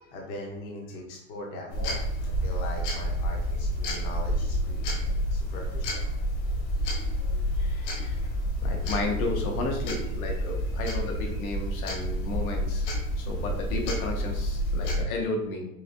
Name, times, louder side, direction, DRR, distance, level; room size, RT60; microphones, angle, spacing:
voice 1, 0.0-5.1 5.3-6.1, left 2 dB, 30° left, -2 dB, 0.7 m, -40 dB
sound 1, 1.7-15.0, equal, 55° left, 1.3 m, -29 dB
voice 2, 7.3-8.2 8.6-12.9 13.2-15.7, left 3 dB, 75° left, 2 dB, 1.2 m, -33 dB
5.8 x 2.3 x 2.5 m, 0.84 s
supercardioid pair, 170°, 43 cm